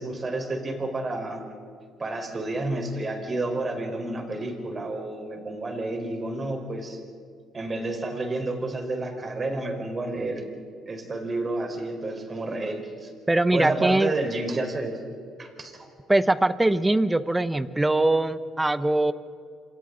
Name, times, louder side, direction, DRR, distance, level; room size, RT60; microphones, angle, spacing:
voice 1, 0.0-1.4 2.0-7.0 7.5-10.5 10.9-13.1 13.5-15.0 15.4-15.8, right 2 dB, 30° right, 3 dB, 4.4 m, -30 dB
voice 2, 13.3-14.1 16.1-19.1, right 2 dB, 10° right, 13 dB, 1.0 m, -22 dB
28.5 x 27.0 x 4.0 m, 2.4 s
cardioid pair, 100°, 0 cm